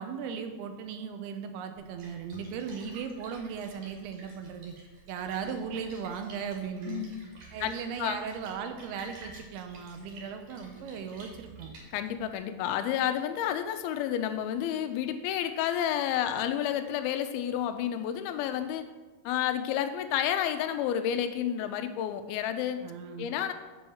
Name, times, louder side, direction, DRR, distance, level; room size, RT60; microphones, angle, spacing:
voice 1, 0.0-4.7 5.1-7.1 7.5-11.7 22.8-23.4, right 6 dB, 85° right, 6 dB, 2.7 m, -37 dB
Splash splatter, 1.7-12.3, right 2 dB, 55° right, 3.4 m, -51 dB
voice 2, 6.9-7.2 7.6-7.7 8.0-8.2 11.9-18.8 19.3-22.9 23.2-23.5, left 10 dB, 80° left, 8 dB, 2.4 m, -30 dB
7.0 x 5.4 x 7.0 m, 1.3 s
omnidirectional pair, 4.6 m